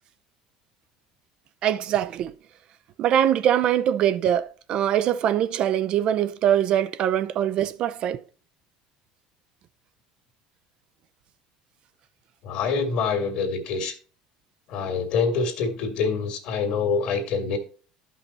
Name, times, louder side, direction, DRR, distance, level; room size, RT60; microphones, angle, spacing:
voice 1, 1.6-2.3 3.0-8.2, right 10 dB, 50° right, 0.6 m, -23 dB
voice 2, 12.4-13.9 14.7-17.6, left 5 dB, 65° left, 2.2 m, -25 dB
12.0 x 5.6 x 4.2 m
supercardioid pair, 115°, 2 cm